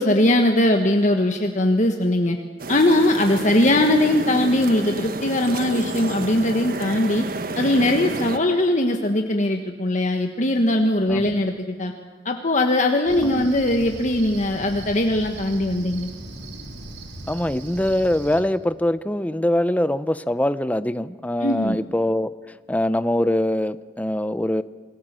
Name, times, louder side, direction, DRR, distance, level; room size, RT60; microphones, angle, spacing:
voice 1, 0.0-2.4 2.7-7.2 7.5-11.9 12.2-16.1 21.4-21.8, left 1 dB, 45° left, 4 dB, 1.5 m, -20 dB
sound 1, 2.6-8.4, right 2 dB, 55° right, 1.3 m, -30 dB
Cricket, 13.1-18.4, right 2 dB, 75° right, 3.1 m, -38 dB
voice 2, 17.3-22.3 22.7-24.6, left 1 dB, 10° left, 14 dB, 0.6 m, -23 dB
27.5 x 20.0 x 7.6 m, 1.5 s
head